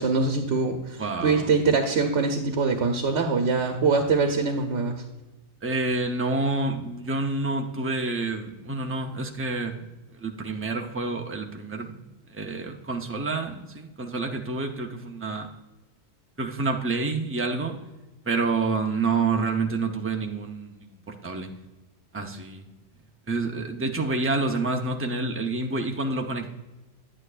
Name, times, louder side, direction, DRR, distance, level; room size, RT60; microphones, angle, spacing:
voice 1, 0.0-5.0, right 4 dB, 80° right, 4 dB, 1.1 m, -23 dB
voice 2, 1.0-1.5 5.6-12.0 12.3-15.5 16.4-17.8 18.3-21.5 22.1-22.6 23.3-26.5, right 3 dB, 15° right, 3 dB, 0.5 m, -28 dB
9.7 x 8.8 x 2.4 m, 1.1 s
omnidirectional pair, 1.2 m